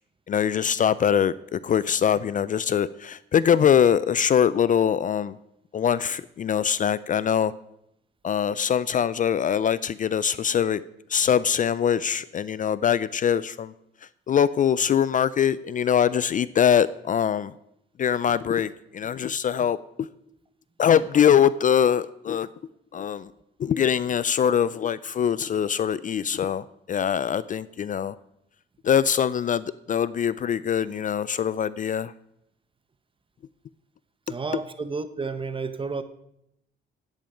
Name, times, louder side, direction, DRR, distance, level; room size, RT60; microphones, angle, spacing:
voice 1, 0.3-5.4 5.7-7.5 8.2-10.8 11.1-13.7 14.3-17.5 18.0-20.1 20.8-22.5 22.9-23.3 23.6-28.2 28.8-32.1, left 8 dB, 40° left, 18 dB, 0.4 m, -23 dB
voice 2, 34.3-36.0, right 4 dB, 25° right, 12 dB, 0.9 m, -31 dB
10.5 x 9.0 x 5.1 m, 0.80 s
cardioid pair, 90°, 20 cm